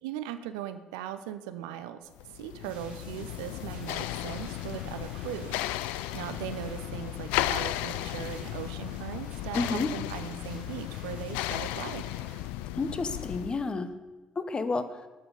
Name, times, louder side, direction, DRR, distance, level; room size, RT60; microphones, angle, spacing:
voice 1, 0.0-5.6 6.1-12.0, right 11 dB, 70° right, 11 dB, 0.6 m, -39 dB
sound 1, 2.2-13.7, left 15 dB, 65° left, 0.4 m, -35 dB
sound 2, 2.6-12.5, right 4 dB, 55° right, 2.4 m, -53 dB
voice 2, 9.5-9.9 12.8-13.9 14.3-15.1, left 3 dB, 30° left, 12 dB, 1.1 m, -30 dB
18.5 x 7.1 x 5.4 m, 1.2 s
figure-of-eight pair, 50°, 3 cm